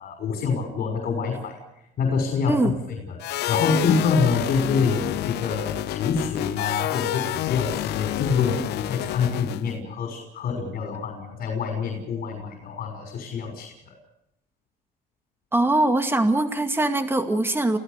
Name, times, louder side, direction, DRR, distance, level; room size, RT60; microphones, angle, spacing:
voice 1, 0.0-1.6 2.0-2.7 3.1-3.2 3.5-13.7, left 5 dB, 60° left, 2 dB, 6.0 m, -26 dB
sound 1, 3.2-9.8, left 15 dB, 80° left, 0.9 m, -29 dB
voice 2, 15.5-17.8, right 2 dB, 15° right, 7 dB, 2.2 m, -22 dB
28.5 x 16.5 x 6.8 m, 0.82 s
cardioid pair, 110°, 17 cm